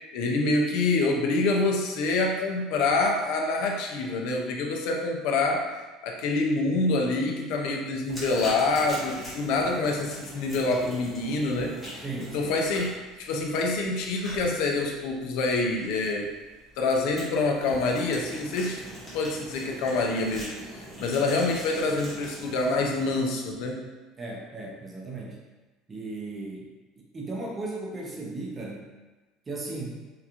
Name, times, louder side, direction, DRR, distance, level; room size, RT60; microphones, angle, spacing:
voice 1, 0.1-5.7 6.0-11.8 12.3-12.9 13.2-16.3 16.8-18.8 19.1-23.8, left 3 dB, 65° left, 1 dB, 0.4 m, -26 dB
sound 1, 8.0-13.0 17.5-23.3, right 1 dB, 50° right, 0.8 m, -46 dB
sound 2, 8.1-22.7, left 1 dB, 20° left, 0.9 m, -44 dB
voice 2, 12.0-12.5 24.2-25.4 25.9-26.7 27.1-28.8 29.5-30.0, right 2 dB, 20° right, -2 dB, 0.5 m, -36 dB
2.8 x 2.3 x 2.4 m, 1.2 s
cardioid pair, 150°, 0 cm